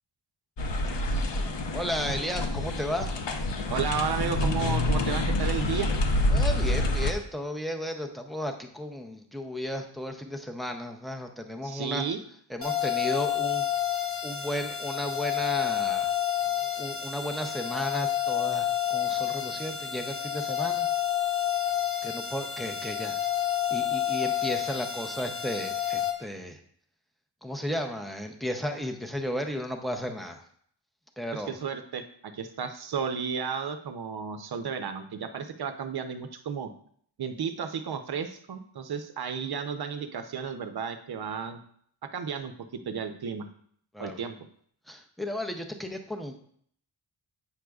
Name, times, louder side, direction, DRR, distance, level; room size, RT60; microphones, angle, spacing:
sound 1, 0.6-7.1, left 1 dB, 65° left, 0.8 m, -27 dB
voice 1, 1.7-3.1 6.3-12.0 12.5-13.6 14.2-16.2 16.6-20.9 22.0-23.2 23.7-26.6 27.4-30.4 31.2-31.6 43.9-44.2 44.9-46.4, equal, ahead, 4 dB, 0.5 m, -34 dB
voice 2, 3.7-5.9 11.6-12.2 31.3-36.7 37.2-41.6 42.1-42.5 42.8-43.5 44.0-44.4, right 6 dB, 55° right, 8 dB, 0.7 m, -33 dB
sound 2, 12.6-26.1, left 10 dB, 30° left, 0.9 m, -29 dB
8.5 x 6.2 x 2.3 m, 0.62 s
wide cardioid pair, 175°, 45 cm